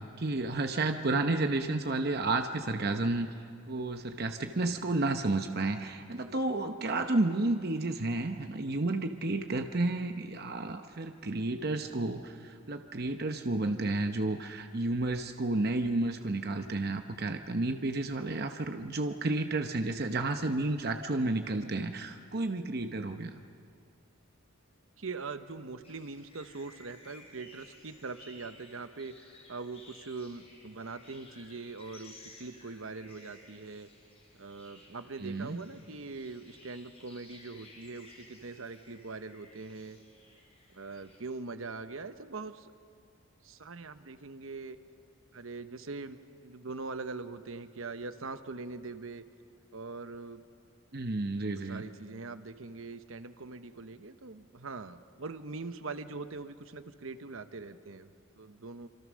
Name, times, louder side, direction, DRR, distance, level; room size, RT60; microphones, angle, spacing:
voice 1, 0.2-3.3 3.7-23.3 35.2-35.6 50.9-51.8, right 2 dB, 45° right, 6 dB, 0.9 m, -31 dB
voice 2, 25.0-33.9 34.3-40.0 40.7-42.7 43.4-44.8 45.3-46.2 46.4-49.2 49.7-50.4 51.6-58.9, right 3 dB, 70° right, 10 dB, 1.0 m, -42 dB
sound 1, 25.8-41.2, left 2 dB, 30° left, 5.4 m, -57 dB
27.0 x 25.0 x 6.3 m, 2.2 s
head